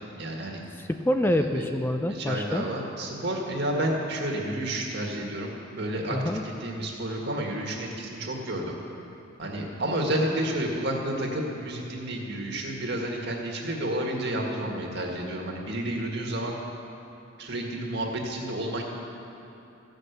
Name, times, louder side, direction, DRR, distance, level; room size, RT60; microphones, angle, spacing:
voice 1, 0.2-0.6 1.2-1.7 2.1-8.8 9.4-16.6 17.4-18.8, right 1 dB, 60° right, 0 dB, 1.9 m, -30 dB
voice 2, 0.8-2.6 6.1-6.4, left 1 dB, 10° left, 6 dB, 0.3 m, -26 dB
15.0 x 6.6 x 8.1 m, 2.8 s
head